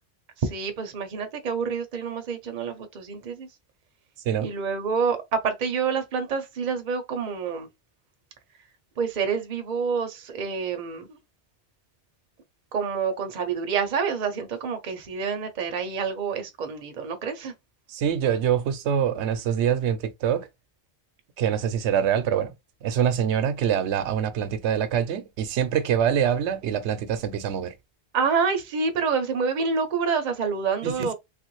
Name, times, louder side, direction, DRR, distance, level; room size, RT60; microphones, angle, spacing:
voice 1, 0.4-3.5 4.4-7.7 9.0-11.2 12.7-17.5 28.1-31.1, right 5 dB, 50° right, 0.6 m, -27 dB
voice 2, 17.9-20.5 21.4-22.5 22.8-27.7 30.8-31.1, right 9 dB, 80° right, 0.9 m, -25 dB
3.2 x 2.5 x 3.0 m
omnidirectional pair, 1.1 m